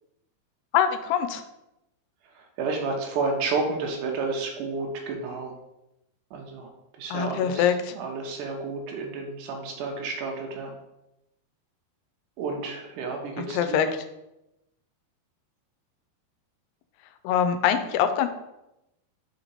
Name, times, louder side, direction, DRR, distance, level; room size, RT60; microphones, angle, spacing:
voice 1, 0.7-1.4 7.1-7.9 13.4-13.9 17.2-18.3, left 9 dB, 90° left, 9 dB, 2.6 m, -24 dB
voice 2, 2.4-5.5 6.3-6.7 7.0-10.7 12.4-13.9, right 4 dB, 70° right, 1 dB, 2.1 m, -31 dB
5.6 x 4.4 x 4.0 m, 0.90 s
omnidirectional pair, 4.5 m